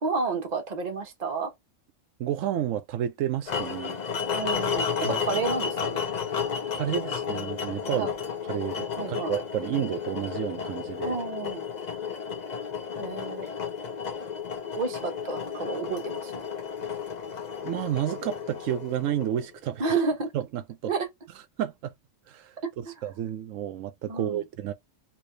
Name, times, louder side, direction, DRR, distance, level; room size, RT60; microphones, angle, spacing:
voice 1, 0.0-1.5 4.3-6.1 7.9-8.1 9.0-9.4 11.0-11.7 13.0-13.5 14.7-16.4 19.8-20.3 20.8-21.1 22.8-22.9 24.1-24.4, right 4 dB, 35° right, 1.0 m, -30 dB
voice 2, 2.2-4.0 5.0-5.2 6.7-8.1 8.5-11.2 12.9-13.0 17.6-19.8 20.3-20.9 21.6-21.9 22.3-22.5 23.0-24.7, right 11 dB, 85° right, 1.0 m, -31 dB
sound 1, 3.5-19.6, left 6 dB, 45° left, 0.7 m, -32 dB
3.2 x 3.0 x 2.7 m
omnidirectional pair, 1.3 m